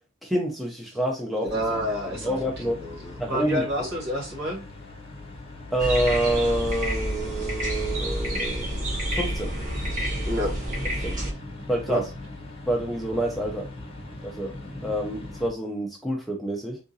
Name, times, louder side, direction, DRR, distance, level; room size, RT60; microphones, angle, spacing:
voice 1, 0.2-1.8 2.2-2.8 3.2-3.6 5.7-8.7 9.2-9.5 11.0-11.1 11.7-12.0 12.7-13.7 14.2-16.8, right 1 dB, ahead, -1 dB, 0.5 m, -27 dB
voice 2, 1.4-2.4 2.7-4.7 10.3-10.6 11.9-12.0, equal, 55° right, -1 dB, 1.7 m, -29 dB
sound 1, 1.5-15.5, left 2 dB, 25° left, 0.9 m, -41 dB
sound 2, 5.8-11.3, right 1 dB, 40° right, 1.1 m, -29 dB
3.7 x 2.4 x 2.7 m, 0.32 s
head